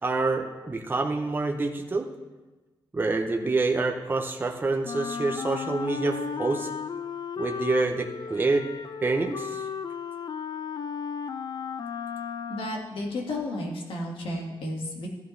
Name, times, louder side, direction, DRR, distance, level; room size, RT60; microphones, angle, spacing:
voice 1, 0.0-2.1 2.9-6.7 7.4-8.7 9.0-9.6, right 3 dB, 25° right, 3 dB, 0.6 m, -27 dB
Wind instrument woodwind instrument, 4.8-13.0, left 6 dB, 55° left, 0.4 m, -35 dB
voice 2, 12.5-15.1, left 1 dB, 90° left, 0 dB, 1.9 m, -32 dB
14.5 x 8.8 x 3.2 m, 1.2 s
wide cardioid pair, 145°, 9 cm